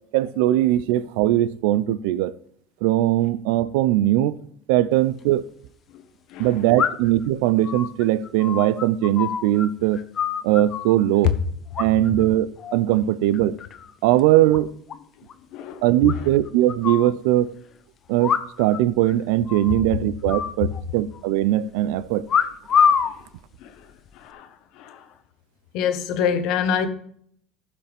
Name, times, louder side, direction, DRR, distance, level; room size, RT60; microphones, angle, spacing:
voice 1, 0.1-2.3 2.8-4.4 4.7-5.4 6.4-10.0 10.4-11.3 11.8-13.6 14.0-14.7 15.8-17.5 18.1-22.3, right 14 dB, 85° right, 0.5 m, -20 dB
sound 1, 5.0-5.1 6.8-7.2 7.6-9.7 9.9-11.0 11.7-12.3 12.6-12.9 13.3-13.9 14.2-14.3 14.5-14.6 14.9-15.0 15.3-15.4 16.1-17.1 18.2-18.8 19.1-19.2 19.5-19.8 20.3-21.2 22.3-23.1 23.9-24.3, left 7 dB, 40° left, 0.7 m, -25 dB
voice 2, 15.5-15.8 23.6-24.5 24.7-25.1 25.7-26.9, left 8 dB, 65° left, 1.1 m, -25 dB
14.5 x 5.8 x 3.5 m
cardioid pair, 120°, 0 cm